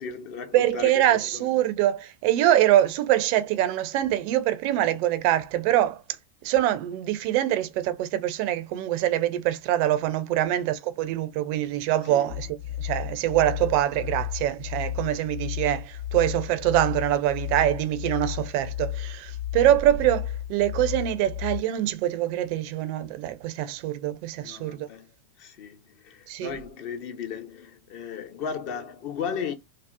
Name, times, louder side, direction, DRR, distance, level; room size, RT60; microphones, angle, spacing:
voice 1, 0.0-1.4 10.4-10.5 12.0-12.3 24.4-25.1 25.4-29.5, left 6 dB, 45° left, 0.6 m, -35 dB
voice 2, 0.5-6.0 6.4-12.5 12.8-24.9 26.3-26.5, right 13 dB, 45° right, 0.4 m, -24 dB
sound 1, 12.3-21.6, left 12 dB, 75° left, 0.9 m, -33 dB
2.7 x 2.0 x 2.3 m
figure-of-eight pair, 90°, 0 cm